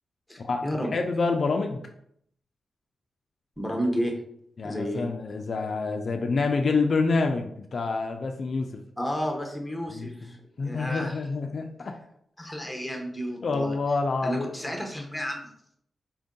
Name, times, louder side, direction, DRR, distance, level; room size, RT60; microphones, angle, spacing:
voice 1, 0.3-1.0 3.6-4.2 4.6-5.1 9.0-10.4 10.6-11.2 12.4-13.8 14.2-15.5, equal, 5° left, 1 dB, 0.8 m, -31 dB
voice 2, 0.9-1.8 4.6-8.8 9.9-10.3 10.6-12.0 13.4-14.5, left 4 dB, 50° left, 4 dB, 0.3 m, -27 dB
4.4 x 2.6 x 3.6 m, 0.70 s
wide cardioid pair, 125°, 0 cm